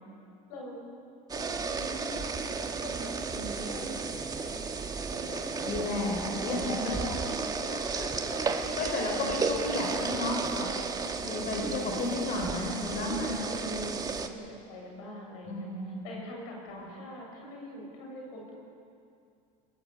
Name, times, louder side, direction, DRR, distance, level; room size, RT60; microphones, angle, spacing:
voice 1, 0.5-0.8 1.3-4.6 5.1-6.0 6.4-8.6 10.5-11.5 12.8-15.7 16.0-18.5, equal, 80° left, 0 dB, 7.6 m, -42 dB
sound 1, 1.3-14.3, right 4 dB, 20° right, 1.6 m, -33 dB
voice 2, 5.6-6.6 6.8-7.1 7.7-8.1 8.7-10.7 11.2-13.3 15.5-16.2 16.7-16.9, left 2 dB, 50° left, 0 dB, 5.3 m, -33 dB
21.0 x 19.0 x 8.3 m, 2.5 s
supercardioid pair, 115°, 18 cm